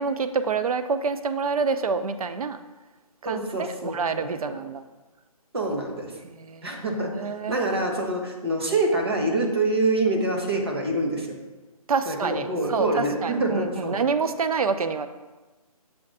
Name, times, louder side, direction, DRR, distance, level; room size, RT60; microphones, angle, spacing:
voice 1, 0.0-2.6 3.2-4.9 6.2-6.8 7.1-7.7 11.9-15.1, right 5 dB, 70° right, 10 dB, 0.5 m, -27 dB
voice 2, 3.2-4.3 5.5-6.2 6.6-7.1 7.5-11.4 12.1-14.0, right 2 dB, 40° right, 1 dB, 1.1 m, -26 dB
7.0 x 3.2 x 5.3 m, 1.2 s
hypercardioid pair, 180°, 19 cm